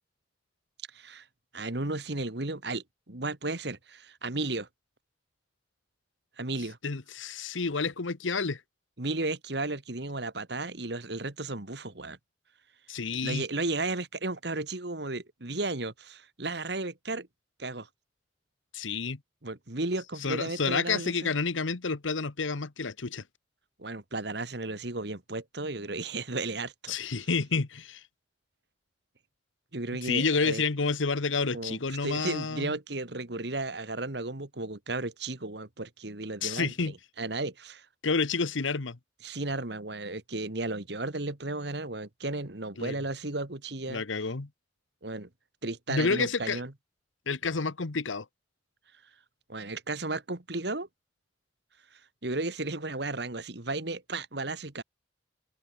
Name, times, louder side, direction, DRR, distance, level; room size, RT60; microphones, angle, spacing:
voice 1, 0.9-1.3 1.5-4.7 6.4-6.8 9.0-12.2 13.2-17.3 17.6-17.9 19.4-21.3 23.8-27.0 29.7-30.6 31.5-37.9 39.2-44.0 45.0-45.3 45.6-46.7 49.5-50.9 51.9-54.8, right 2 dB, 60° right, 1.9 m, -34 dB
voice 2, 6.8-8.6 12.9-13.4 18.7-19.2 20.2-23.2 26.9-28.0 30.0-32.7 36.4-36.9 38.0-39.0 42.8-43.0 43.9-44.5 45.9-46.6 47.3-48.2, left 4 dB, 90° left, 1.1 m, -29 dB
open air
head